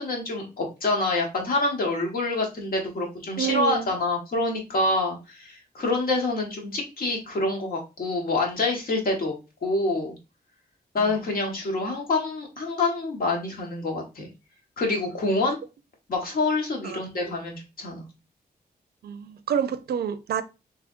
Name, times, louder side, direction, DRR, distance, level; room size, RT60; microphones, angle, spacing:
voice 1, 0.0-9.3 9.6-10.1 10.9-14.3 14.8-15.6 16.1-18.0, left 2 dB, 60° left, 1.2 m, -26 dB
voice 2, 3.4-3.9 11.0-11.2 16.8-17.0 19.0-20.4, right 8 dB, 75° right, 0.4 m, -28 dB
3.5 x 3.3 x 2.4 m
wide cardioid pair, 155°, 17 cm